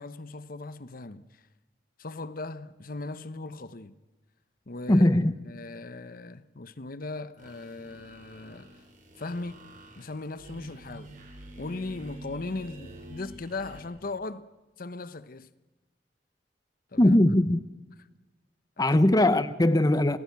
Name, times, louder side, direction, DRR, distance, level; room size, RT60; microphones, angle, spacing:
voice 1, 0.0-1.4 2.0-3.9 4.7-5.1 5.5-8.7 9.2-9.7 10.0-11.1 11.6-14.5 14.8-15.5 16.9-17.2 18.8-19.0, left 3 dB, 55° left, 0.9 m, -38 dB
voice 2, 4.9-5.3 17.0-17.6 18.8-20.2, left 1 dB, 20° left, 0.8 m, -20 dB
sound 1, 7.4-13.8, right 1 dB, 50° right, 7.2 m, -47 dB
29.0 x 19.0 x 9.4 m
head